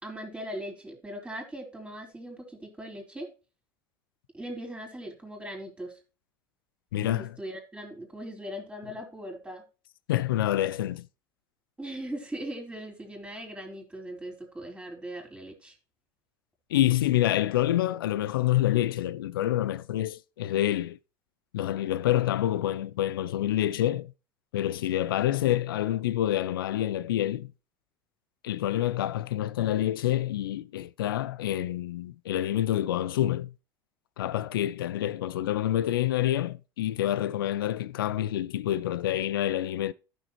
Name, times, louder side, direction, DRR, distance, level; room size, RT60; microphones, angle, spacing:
voice 1, 0.0-3.3 4.3-6.0 7.0-9.6 11.8-15.7, right 1 dB, 10° right, 4.2 m, -39 dB
voice 2, 6.9-7.4 10.1-11.1 16.7-21.0 21.5-24.1 24.5-27.5 28.4-33.5 34.2-39.9, left 13 dB, 85° left, 0.4 m, -27 dB
14.0 x 6.4 x 3.0 m
hypercardioid pair, 80°, 11 cm